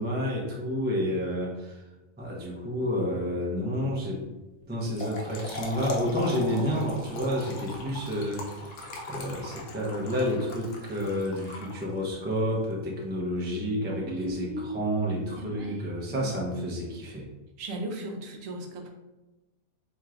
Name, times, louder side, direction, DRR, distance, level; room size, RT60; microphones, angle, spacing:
voice 1, 0.0-1.8 2.2-4.3 4.7-8.8 9.1-17.3, equal, 15° right, -3 dB, 0.3 m, -30 dB
Trickle dribble / Fill (with liquid), 4.7-12.2, left 2 dB, 65° left, 1.0 m, -39 dB
voice 2, 14.0-16.3 17.6-18.9, right 2 dB, 70° right, 3 dB, 0.9 m, -37 dB
4.3 x 3.0 x 2.4 m, 1.1 s
omnidirectional pair, 1.5 m